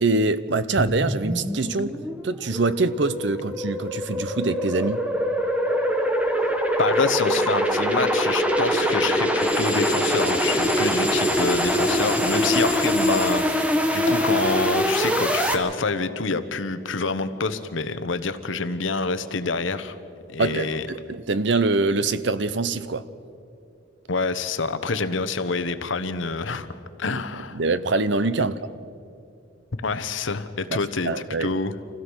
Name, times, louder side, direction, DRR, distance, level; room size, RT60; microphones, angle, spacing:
voice 1, 0.0-2.0 2.2-5.1 20.4-23.0 27.1-27.2 27.5-28.6 31.1-31.5, right 3 dB, 65° right, 0.7 m, -24 dB
sound 1, 0.8-15.5, equal, 5° right, 1.1 m, -23 dB
voice 2, 6.8-20.0 20.3-20.8 24.1-26.7 27.0-27.6 29.8-31.7, left 4 dB, 75° left, 1.0 m, -27 dB
sound 2, 9.4-13.4, left 3 dB, 30° right, 5.5 m, -34 dB
26.0 x 16.5 x 6.3 m
head